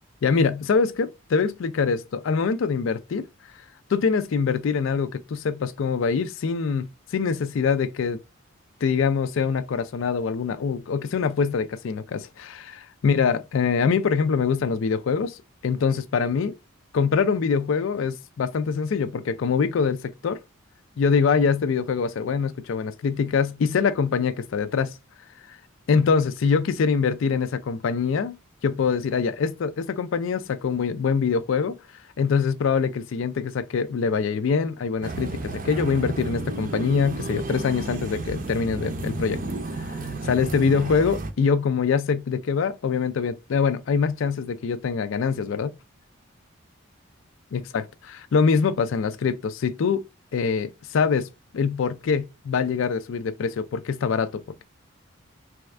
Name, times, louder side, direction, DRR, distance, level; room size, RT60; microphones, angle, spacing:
voice 1, 0.2-3.3 3.9-8.2 8.8-16.5 16.9-20.4 21.0-24.9 25.5-25.6 25.9-28.4 28.6-31.8 32.2-39.4 39.8-39.9 40.2-45.7 47.5-50.0 50.3-54.6, left 5 dB, 70° left, 0.4 m, -24 dB
sound 1, 35.0-41.3, right 2 dB, 40° right, 0.5 m, -32 dB
3.4 x 2.3 x 3.2 m
head